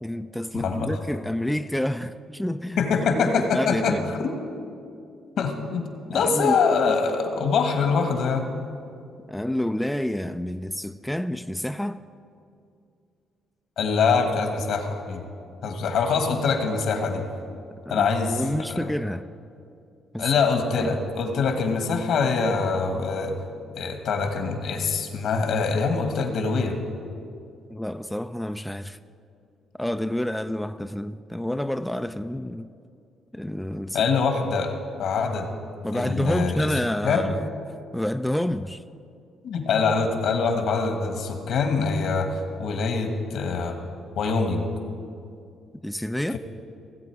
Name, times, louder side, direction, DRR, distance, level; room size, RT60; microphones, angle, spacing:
voice 1, 0.0-2.8 3.1-4.1 6.1-6.6 9.3-12.0 17.9-19.3 20.1-20.3 20.8-20.9 27.7-29.0 29.8-32.7 33.3-34.1 35.8-37.5 37.9-38.8 45.8-46.4, left 1 dB, 5° left, 10 dB, 0.3 m, -28 dB
voice 2, 0.5-0.9 2.8-4.3 5.4-8.5 13.8-15.2 15.6-17.2 17.9-18.4 18.7-18.9 20.2-23.3 23.7-26.8 33.9-34.7 35.0-35.5 35.9-36.7 37.0-37.3 39.4-42.3 42.6-43.8 44.1-44.7, left 5 dB, 75° left, 5 dB, 1.5 m, -24 dB
17.0 x 8.1 x 4.7 m, 2.4 s
cardioid pair, 90°, 0 cm